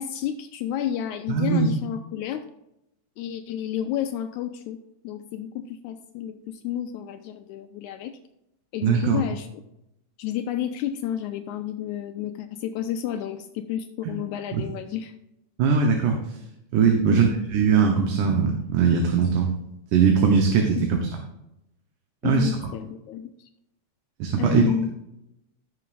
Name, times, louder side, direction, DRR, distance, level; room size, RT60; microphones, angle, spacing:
voice 1, 0.0-2.4 3.2-4.8 5.0-8.1 8.7-9.6 10.2-15.1 17.1-17.4 20.8-21.0 22.2-23.5 24.4-24.9, left 10 dB, 80° left, 7 dB, 1.9 m, -31 dB
voice 2, 1.3-1.7 8.8-9.2 14.5-14.6 15.6-16.2 16.7-19.5 19.9-21.0 22.2-22.5 24.2-24.6, right 6 dB, 80° right, 2 dB, 2.6 m, -20 dB
16.0 x 6.7 x 2.6 m, 0.85 s
omnidirectional pair, 3.6 m